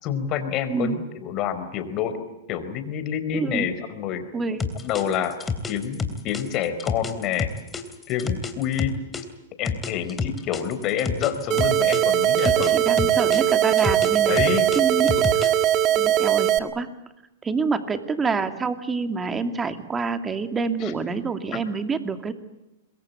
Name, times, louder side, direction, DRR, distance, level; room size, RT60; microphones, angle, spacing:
voice 1, 0.0-2.2 2.5-4.3 4.8-5.4 5.7-7.5 8.1-9.0 9.6-13.2 14.2-14.7 15.1-15.3 20.8-20.9, left 9 dB, 40° left, 10 dB, 4.6 m, -28 dB
voice 2, 0.7-1.0 3.3-3.7 4.3-4.7 12.4-14.3 14.7-15.2 15.9-16.9 17.4-22.3, right 4 dB, 15° right, 9 dB, 2.6 m, -27 dB
sound 1, 4.6-9.2 9.7-12.7 13.0-15.7, left 5 dB, 15° left, 3.2 m, -29 dB
sound 2, 11.5-16.6, right 11 dB, 35° right, 1.7 m, -20 dB
26.5 x 22.0 x 8.4 m, 0.92 s
hypercardioid pair, 130°, 0 cm